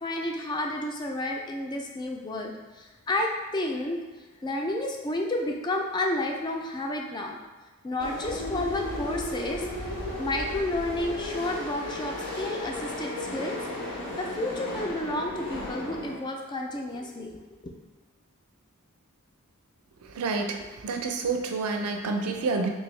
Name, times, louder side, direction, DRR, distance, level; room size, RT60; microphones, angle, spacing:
voice 1, 0.0-4.0 4.4-7.4 7.8-9.7 10.2-13.6 14.2-17.4, left 1 dB, 20° left, 1 dB, 0.3 m, -31 dB
sound 1, 8.0-16.2, left 1 dB, 80° left, 0.8 m, -35 dB
voice 2, 20.0-22.7, right 4 dB, 75° right, 4 dB, 0.4 m, -29 dB
3.5 x 2.6 x 3.1 m, 1.2 s
head